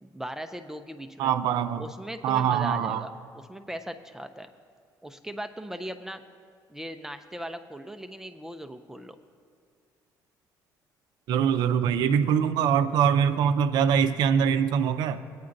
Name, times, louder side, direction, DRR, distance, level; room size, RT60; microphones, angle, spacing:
voice 1, 0.0-1.3 1.8-4.5 5.0-6.2 6.7-9.2, equal, 5° right, 7 dB, 0.3 m, -39 dB
voice 2, 1.2-1.9 2.2-3.0 11.3-15.2, right 8 dB, 75° right, 11 dB, 0.4 m, -23 dB
19.0 x 9.4 x 2.6 m, 2.1 s
cardioid pair, 150°, 7 cm